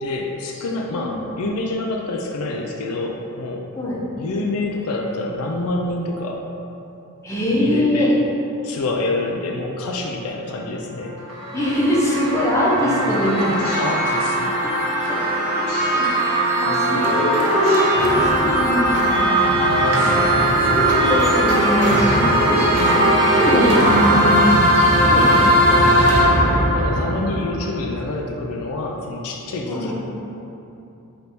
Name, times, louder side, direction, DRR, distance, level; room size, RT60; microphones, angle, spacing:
voice 1, 0.0-3.7 4.2-6.4 7.6-8.1 8.6-11.2 12.8-13.1 13.7-14.6 16.7-17.3 19.5-21.0 22.7-22.9 25.9-26.3 26.7-29.9, left 2 dB, 70° left, 1 dB, 0.4 m, -27 dB
voice 2, 0.9-1.2 3.8-4.0 7.2-8.1 11.5-13.5 15.1-15.2 15.5-15.6 15.9-19.4 20.5-25.5 29.6-29.9, left 1 dB, 15° left, -7 dB, 0.8 m, -22 dB
sound 1, 11.1-28.0, right 1 dB, 80° right, 0.6 m, -18 dB
sound 2, 13.6-15.1 15.7-17.0 17.5-18.3, left 3 dB, 45° left, 0.9 m, -33 dB
3.4 x 2.7 x 4.3 m, 2.9 s
head